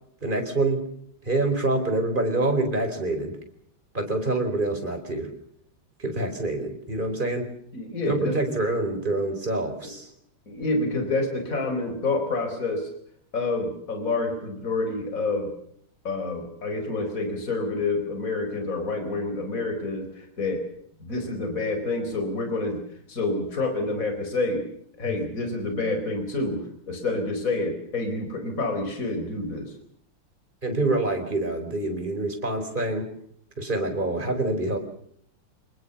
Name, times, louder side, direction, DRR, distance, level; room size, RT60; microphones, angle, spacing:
voice 1, 0.2-0.8 1.2-3.4 3.9-5.3 6.0-7.5 8.1-10.1 25.0-25.1 30.6-33.1 33.6-34.8, right 2 dB, 20° right, 5 dB, 4.3 m, -26 dB
voice 2, 7.7-8.5 10.5-12.9 13.3-15.5 16.0-20.6 21.0-22.8 23.1-24.6 25.0-26.6 26.9-29.7, left 2 dB, 35° left, 6 dB, 4.7 m, -28 dB
26.0 x 20.5 x 6.9 m, 0.66 s
omnidirectional pair, 2.4 m